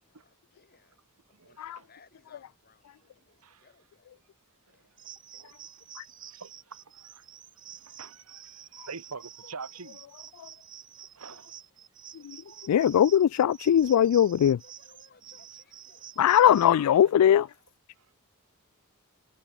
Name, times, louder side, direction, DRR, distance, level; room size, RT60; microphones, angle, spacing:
voice 1, 0.0-4.2 4.7-5.0 14.6-16.1, left 4 dB, 45° left, 6.4 m, -62 dB
voice 2, 1.3-1.9 3.4-3.7 4.7-5.8 6.2-6.8 7.7-10.0 11.0-11.5 12.4-12.7 17.9-18.1, right 4 dB, 85° right, 1.6 m, -46 dB
sound 1, 5.0-16.7, right 10 dB, 40° right, 7.0 m, -49 dB
voice 3, 12.6-14.6 16.2-17.5, left 10 dB, 90° left, 0.3 m, -21 dB
head